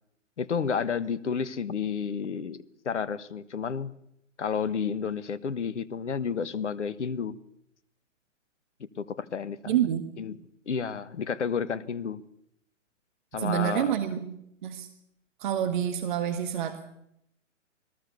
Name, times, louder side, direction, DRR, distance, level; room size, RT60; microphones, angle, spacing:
voice 1, 0.4-3.9 4.4-7.3 9.0-9.8 10.2-10.4 10.7-12.2 13.3-14.0, left 6 dB, 65° left, 17 dB, 1.4 m, -31 dB
voice 2, 9.7-10.0 13.4-14.9 15.4-16.9, right 10 dB, 40° right, 9 dB, 1.7 m, -28 dB
22.5 x 19.5 x 7.0 m, 0.77 s
figure-of-eight pair, 125°, 38 cm